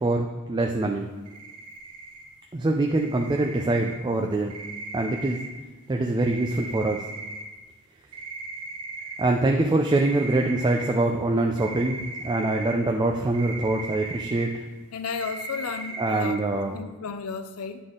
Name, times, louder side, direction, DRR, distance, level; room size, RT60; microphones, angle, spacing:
voice 1, 0.0-1.1 2.5-4.5 4.9-5.4 5.9-7.1 9.2-14.5 16.0-16.7, right 2 dB, 20° right, 0.4 m, -24 dB
sound 1, 1.3-2.2 2.9-3.9 4.5-5.5 6.2-7.4 8.1-9.2 9.9-10.9 11.6-12.7 13.3-14.4 14.8-14.9 15.2-16.3, right 3 dB, 85° right, 1.1 m, -38 dB
voice 2, 14.9-17.8, left 5 dB, 75° left, 0.5 m, -33 dB
9.8 x 3.9 x 3.7 m
head